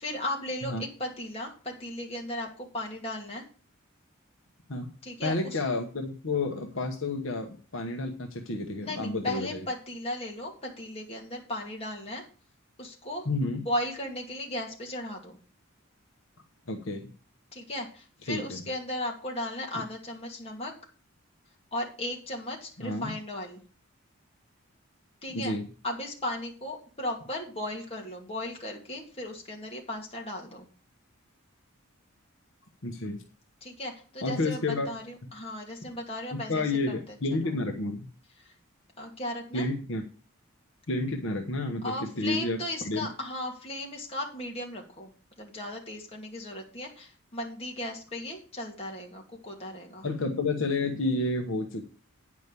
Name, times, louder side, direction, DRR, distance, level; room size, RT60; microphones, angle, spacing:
voice 1, 0.0-3.4 5.0-5.6 8.8-12.3 12.8-13.3 13.6-15.4 17.5-20.7 21.7-23.6 25.2-25.5 25.8-30.7 33.6-37.2 37.4-37.5 38.4-38.5 39.0-39.7 41.8-45.1 45.4-50.1, left 1 dB, 30° left, 0 dB, 2.4 m, -36 dB
voice 2, 5.2-9.7 13.2-13.6 16.7-17.1 18.3-18.6 22.8-23.1 25.3-25.6 32.8-33.2 34.2-34.9 36.3-38.1 39.5-40.0 40.9-42.6 42.8-43.1 50.0-51.8, left 2 dB, 60° left, 3 dB, 1.1 m, -30 dB
9.5 x 5.2 x 6.8 m, 0.39 s
head